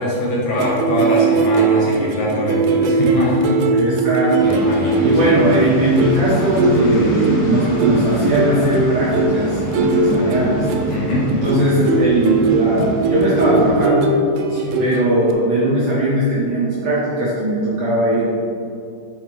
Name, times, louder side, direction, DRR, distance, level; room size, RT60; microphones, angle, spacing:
voice 1, 0.0-3.6 4.4-5.4 10.9-11.3 14.5-14.8, left 1 dB, 70° left, -4 dB, 2.4 m, -22 dB
sound 1, 0.6-15.3, right 3 dB, 90° right, 2.6 m, -20 dB
voice 2, 3.7-4.6 5.0-10.7 11.3-14.2 14.8-18.2, right 1 dB, 65° right, -8 dB, 1.8 m, -19 dB
sound 2, 4.4-13.8, right 1 dB, 40° left, 2.0 m, -25 dB
8.8 x 6.1 x 3.1 m, 2.5 s
omnidirectional pair, 4.5 m